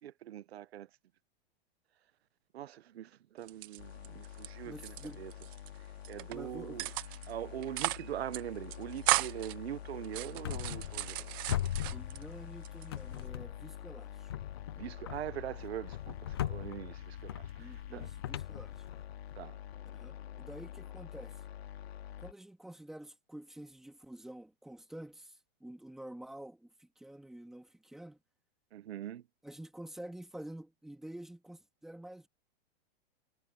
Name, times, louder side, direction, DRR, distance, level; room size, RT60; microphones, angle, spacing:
voice 1, 0.0-0.9 2.5-5.3 6.1-6.9 7.3-11.4 14.7-18.1 19.4-19.6 28.7-29.2, right 12 dB, 90° right, 1.2 m, -42 dB
sound 1, 3.4-4.5 4.7-5.7 6.0-6.4 6.8-7.3 7.6-8.1 8.3-8.4 8.7-9.5 10.0-12.2 12.6-13.3, right 18 dB, 25° right, 0.7 m, -35 dB
sound 2, 3.8-22.3, left 11 dB, 85° left, 4.3 m, -47 dB
voice 2, 4.6-5.2 6.3-6.9 11.9-14.3 17.6-19.0 19.9-21.4 22.2-28.2 29.4-32.3, right 1 dB, ahead, 2.1 m, -49 dB
sound 3, 10.4-11.2 11.5-12.6 12.9-13.7 14.3-19.4, left 11 dB, 25° left, 0.4 m, -39 dB
supercardioid pair, 180°, 30 cm